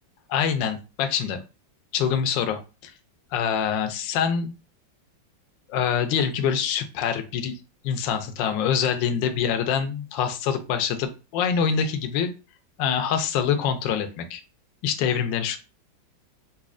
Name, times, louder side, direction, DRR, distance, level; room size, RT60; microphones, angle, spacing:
voice 1, 0.3-1.4 1.9-2.9 3.3-4.5 5.7-7.5 7.8-12.3 12.8-14.4 14.8-15.6, left 7 dB, 80° left, 7 dB, 1.3 m, -25 dB
4.1 x 2.6 x 2.5 m, 0.31 s
omnidirectional pair, 2.0 m